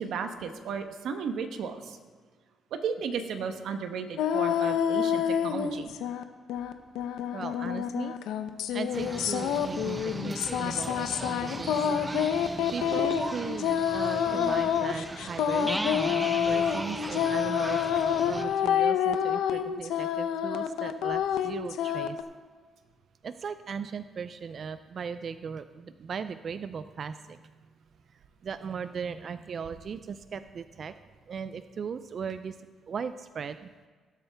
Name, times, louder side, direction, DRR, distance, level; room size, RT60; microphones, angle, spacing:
voice 1, 0.0-2.0 2.7-5.9, right 6 dB, 75° right, 7 dB, 1.1 m, -34 dB
sound 1, 4.2-6.2 6.5-22.2, left 8 dB, 85° left, 0.7 m, -28 dB
voice 2, 7.3-8.2 8.7-11.7 12.7-15.8 16.5-17.8 18.3-22.2 23.2-27.5 28.1-30.9 31.3-32.6 32.9-33.7, right 6 dB, 50° right, 11 dB, 0.4 m, -38 dB
sound 2, 8.9-18.5, right 2 dB, 20° right, 1.0 m, -39 dB
sound 3, 15.7-19.3, right 1 dB, 5° right, 0.6 m, -37 dB
18.0 x 7.9 x 3.5 m, 1.5 s
cardioid pair, 90°, 0 cm